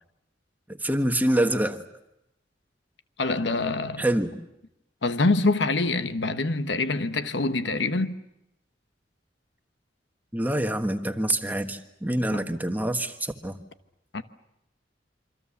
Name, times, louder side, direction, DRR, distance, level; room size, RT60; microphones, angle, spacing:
voice 1, 0.7-1.8 4.0-4.3 10.3-13.6, right 1 dB, 10° right, 1.4 m, -26 dB
voice 2, 3.2-4.0 5.0-8.2 12.3-12.5 14.1-14.2, left 3 dB, 80° left, 1.2 m, -25 dB
27.5 x 24.5 x 7.2 m
head